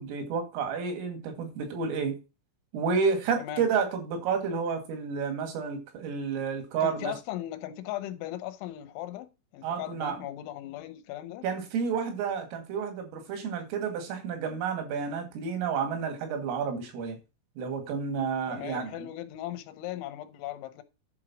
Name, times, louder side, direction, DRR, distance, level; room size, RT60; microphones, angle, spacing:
voice 1, 0.0-2.2 2.7-7.1 9.6-10.2 11.4-17.2 17.6-19.1, right 6 dB, 85° right, 4.8 m, -30 dB
voice 2, 3.4-3.7 6.8-11.4 18.5-20.8, left 13 dB, 75° left, 3.2 m, -38 dB
10.5 x 4.6 x 6.2 m
omnidirectional pair, 5.7 m